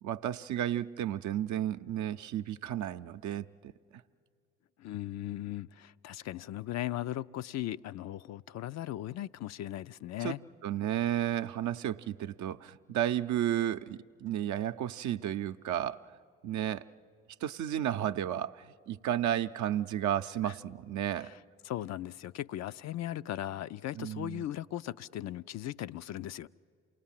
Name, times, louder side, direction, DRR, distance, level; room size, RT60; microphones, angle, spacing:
voice 1, 0.0-3.7 10.2-10.4 10.6-16.0 16.4-16.9 17.4-21.3 23.9-24.4, right 11 dB, 60° right, 9 dB, 0.7 m, -33 dB
voice 2, 4.8-10.4 20.4-20.5 21.2-21.4 21.6-26.5, left 13 dB, 55° left, 13 dB, 0.5 m, -38 dB
28.5 x 19.0 x 7.4 m, 2.3 s
hypercardioid pair, 45°, 33 cm